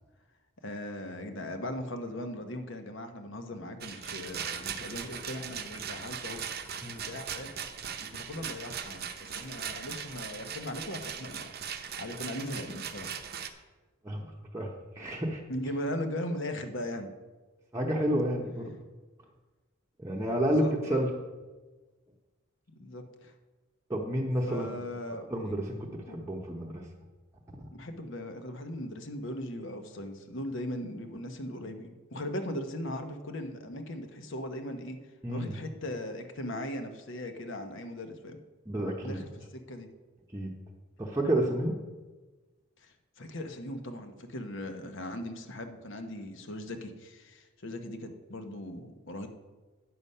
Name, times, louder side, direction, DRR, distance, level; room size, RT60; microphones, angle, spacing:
voice 1, 0.6-6.4 6.8-7.5 8.0-11.5 12.0-13.1 15.5-17.1 20.4-21.0 22.7-23.3 24.5-25.6 26.1-26.2 27.7-35.0 35.3-38.4 39.0-39.9 42.8-49.3, left 1 dB, 65° left, 6 dB, 1.1 m, -39 dB
Rattle, 3.8-13.5, right 7 dB, 50° right, 0.7 m, -39 dB
voice 2, 15.0-15.4 17.7-18.7 20.0-21.1 23.9-24.7 25.3-26.9 35.2-35.5 38.7-39.2 40.3-40.5 41.0-41.8, right 1 dB, 15° right, -2 dB, 0.9 m, -30 dB
9.5 x 7.0 x 5.5 m, 1.2 s
head